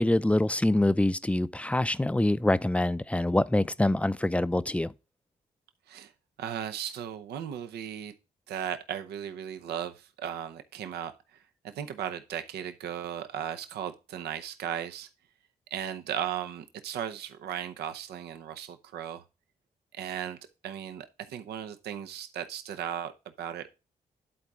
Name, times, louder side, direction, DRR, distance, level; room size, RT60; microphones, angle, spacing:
voice 1, 0.0-4.9, left 1 dB, 10° left, 0.5 m, -25 dB
voice 2, 6.4-8.1 8.5-15.1 15.7-19.2 19.9-20.4 20.6-23.1 23.4-23.7, right 9 dB, 90° right, 0.7 m, -36 dB
11.0 x 4.1 x 3.6 m
supercardioid pair, 45°, 16 cm